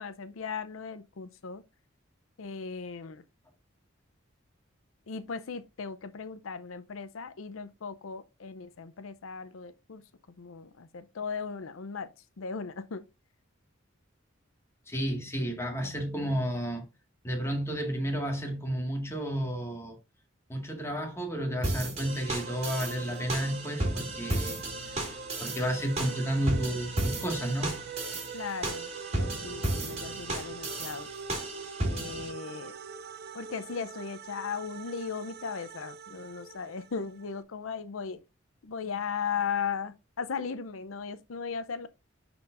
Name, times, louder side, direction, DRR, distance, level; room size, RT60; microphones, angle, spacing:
voice 1, 0.0-1.6 2.4-3.2 5.1-10.0 10.4-12.1 12.4-13.0 15.8-16.4 28.3-31.1 31.8-32.7 33.3-38.2 38.6-41.9, left 6 dB, 85° left, 0.6 m, -37 dB
voice 2, 14.9-16.8 17.2-20.0 20.5-25.1 25.4-27.9, equal, 15° left, 1.8 m, -32 dB
sound 1, 21.6-32.3, right 1 dB, 35° right, 2.4 m, -34 dB
sound 2, 22.0-37.4, right 5 dB, 55° right, 0.6 m, -44 dB
10.5 x 4.4 x 2.5 m
head